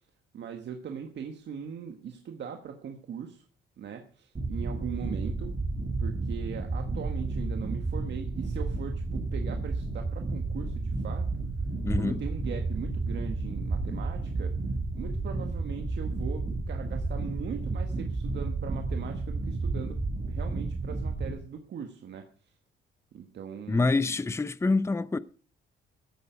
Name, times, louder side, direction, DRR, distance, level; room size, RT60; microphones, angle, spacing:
voice 1, 0.3-3.4 3.8-5.5 6.0-11.3 12.0-14.6 14.9-20.0 20.3-22.5 23.1-24.2, right 7 dB, 60° right, 1.8 m, -40 dB
sound 1, 4.4-21.3, right 3 dB, 30° right, 2.8 m, -32 dB
voice 2, 11.8-12.2 23.7-25.2, left 3 dB, 15° left, 0.6 m, -26 dB
15.5 x 9.3 x 5.3 m
cardioid pair, 90°, 20 cm